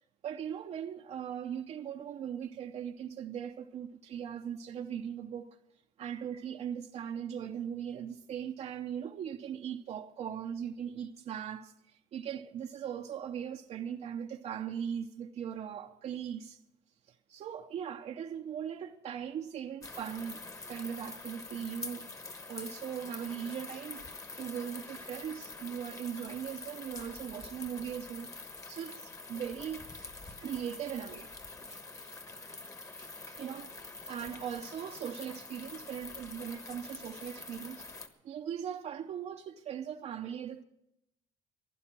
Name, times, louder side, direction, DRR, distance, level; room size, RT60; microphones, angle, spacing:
voice 1, 0.2-5.5 6.0-16.6 17.1-20.4 20.7-22.1 22.5-24.0 24.4-28.3 28.7-29.9 30.3-31.3 31.7-31.8 33.0-33.7 34.1-37.9 38.2-40.6, right 8 dB, 55° right, 0.7 m, -39 dB
sound 1, 19.8-38.1, left 3 dB, 25° left, 1.3 m, -46 dB
15.5 x 11.0 x 6.1 m
cardioid pair, 115°, 13 cm